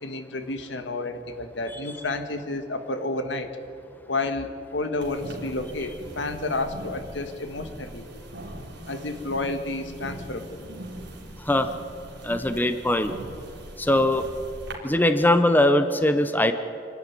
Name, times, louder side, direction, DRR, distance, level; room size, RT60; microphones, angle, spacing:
voice 1, 0.0-3.5 4.1-8.1 8.8-10.7, left 2 dB, 75° left, 8 dB, 1.7 m, -30 dB
sound 1, 5.0-14.7, right 1 dB, 65° right, 3.8 m, -41 dB
voice 2, 12.2-13.2 13.8-14.2 14.8-16.5, left 1 dB, 10° left, 9 dB, 0.8 m, -21 dB
26.0 x 11.5 x 9.7 m, 2.5 s
head